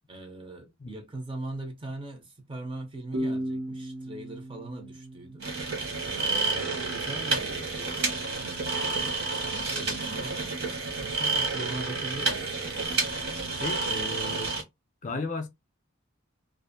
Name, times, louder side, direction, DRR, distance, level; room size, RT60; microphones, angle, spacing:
voice 1, 0.1-5.7 6.0-8.0 8.4-10.6 11.0-13.6, right 2 dB, 25° right, 0.5 m, -41 dB
sound 1, 3.1-6.6, right 1 dB, 70° right, 0.6 m, -36 dB
sound 2, 5.4-14.6, right 3 dB, 50° right, 0.9 m, -30 dB
voice 2, 13.6-14.5 15.0-15.5, left 2 dB, 35° left, 0.4 m, -34 dB
2.5 x 2.4 x 2.5 m
head